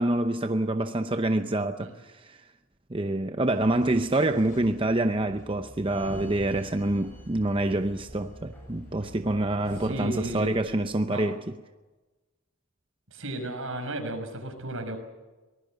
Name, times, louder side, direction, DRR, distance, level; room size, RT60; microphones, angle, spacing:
voice 1, 0.0-2.4 2.9-11.4, right 1 dB, 25° right, 0.7 m, -26 dB
sound 1, 3.5-10.4, equal, 40° left, 4.4 m, -49 dB
Sliding door, 5.9-11.1, equal, 10° left, 7.4 m, -46 dB
voice 2, 9.8-10.8 11.1-11.4 13.1-15.0, right 1 dB, 70° right, 5.8 m, -34 dB
24.0 x 19.0 x 7.8 m
head